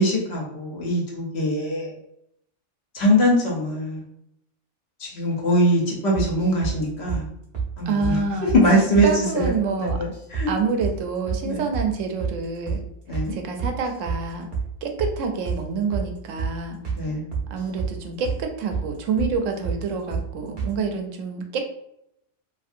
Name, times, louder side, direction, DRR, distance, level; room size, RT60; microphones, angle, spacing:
voice 1, 0.0-1.9 2.9-4.0 5.0-7.3 7.8-9.1 9.3-9.5 9.8-10.5 11.4-11.7 13.1-13.4 17.0-17.2, equal, 60° left, -2 dB, 1.1 m, -22 dB
sound 1, 6.2-6.8 7.1-7.2 7.5-7.7 8.0-8.2 8.5-8.6 8.9-9.1 9.4-9.6 9.9-10.5 10.8-11.0 11.3-11.4 11.7-11.9 12.2-12.4 12.7-12.8 13.1-13.3 13.6-14.2 14.5-14.7 15.0-15.2 15.5-15.6 15.9-16.1 16.4-16.5 16.8-17.0 17.3-17.9 18.2-18.4 18.7-18.9 19.2-19.3 19.6-19.8 20.1-20.3 20.6-20.7, right 5 dB, 50° right, 0.8 m, -28 dB
voice 2, 7.9-8.5 9.0-10.0 10.5-12.8 13.3-14.5 14.8-16.8 17.5-21.7, right 4 dB, 90° right, 4 dB, 0.9 m, -27 dB
2.6 x 2.6 x 2.4 m, 0.78 s
omnidirectional pair, 1.3 m